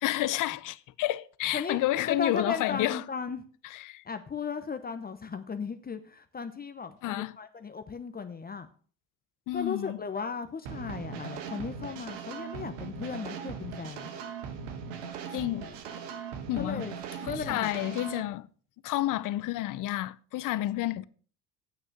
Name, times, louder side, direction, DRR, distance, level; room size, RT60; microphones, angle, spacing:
voice 1, 0.0-3.0 3.6-4.0 7.0-7.4 9.5-10.0 15.3-16.0 16.5-16.8 17.2-18.5 18.8-21.0, left 15 dB, 55° left, 0.6 m, -30 dB
voice 2, 2.1-3.4 4.1-8.7 9.5-14.1 16.5-17.0 17.3-17.7, left 5 dB, 25° left, 0.8 m, -36 dB
sound 1, 10.7-18.2, right 6 dB, 85° right, 1.5 m, -39 dB
8.8 x 6.4 x 6.0 m
supercardioid pair, 85°, 38 cm